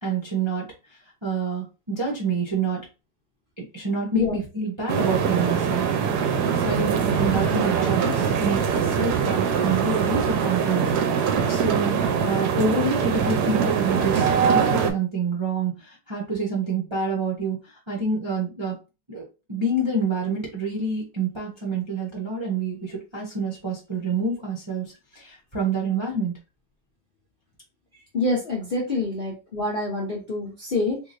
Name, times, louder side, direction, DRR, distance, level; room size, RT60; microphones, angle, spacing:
voice 1, 0.0-0.7 1.2-2.9 3.6-5.9 6.5-11.9 12.2-17.6 17.9-18.8 19.1-26.3, right 3 dB, 30° right, -3 dB, 0.5 m, -27 dB
sound 1, 4.9-14.9, right 7 dB, 70° right, 1.0 m, -23 dB
voice 2, 28.1-31.0, left 3 dB, 45° left, -3 dB, 0.7 m, -26 dB
3.8 x 2.9 x 2.5 m, 0.29 s
omnidirectional pair, 2.0 m